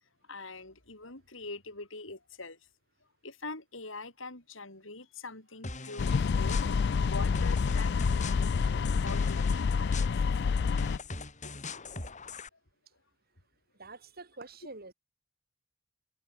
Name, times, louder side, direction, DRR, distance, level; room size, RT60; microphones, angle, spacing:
voice 1, 0.3-2.6 3.2-6.6 7.0-8.6 9.0-10.1 11.4-11.6, left 3 dB, 75° left, 5.9 m, -44 dB
sound 1, 5.6-12.5, left 3 dB, 40° left, 4.7 m, -42 dB
sound 2, 6.0-11.0, left 5 dB, 60° left, 0.4 m, -28 dB
voice 2, 13.8-14.9, right 3 dB, 50° right, 4.5 m, -46 dB
head